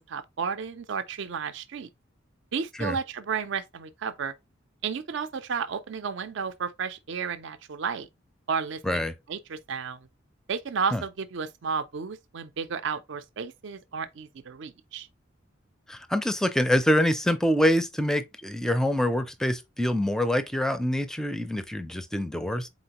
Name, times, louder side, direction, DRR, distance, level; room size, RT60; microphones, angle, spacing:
voice 1, 0.0-1.9 2.5-4.3 4.8-8.1 8.5-10.0 10.5-15.1, right 6 dB, 65° right, 0.5 m, -32 dB
voice 2, 8.8-9.1 10.9-11.0 15.9-22.7, equal, 5° left, 0.4 m, -25 dB
4.3 x 3.8 x 2.8 m
head